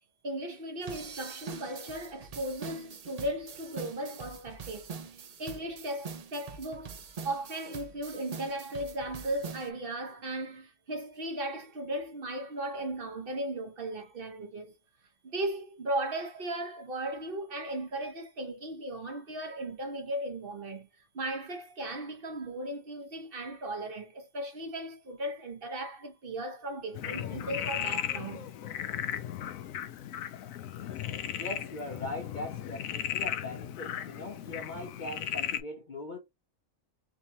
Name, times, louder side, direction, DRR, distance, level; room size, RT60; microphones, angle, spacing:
voice 1, 0.2-14.8 15.2-20.9 21.1-28.5, right 1 dB, 45° right, 1.0 m, -37 dB
sound 1, 0.8-9.7, right 5 dB, 75° right, 0.3 m, -44 dB
Frog, 26.9-35.6, left 10 dB, 80° left, 1.0 m, -36 dB
voice 2, 31.3-36.2, left 2 dB, 50° left, 0.6 m, -40 dB
3.6 x 3.0 x 2.7 m
omnidirectional pair, 1.4 m